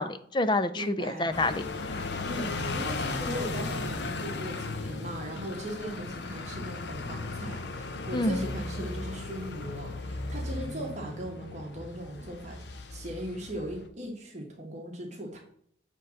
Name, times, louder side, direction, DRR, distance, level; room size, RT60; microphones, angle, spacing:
voice 1, 0.0-1.7 8.1-8.5, left 2 dB, 25° left, 12 dB, 0.4 m, -28 dB
voice 2, 0.7-1.3 2.2-15.4, equal, 40° right, -1 dB, 1.6 m, -39 dB
sound 1, 1.3-13.9, left 3 dB, 60° left, 0.7 m, -36 dB
7.9 x 3.8 x 6.4 m, 0.63 s
head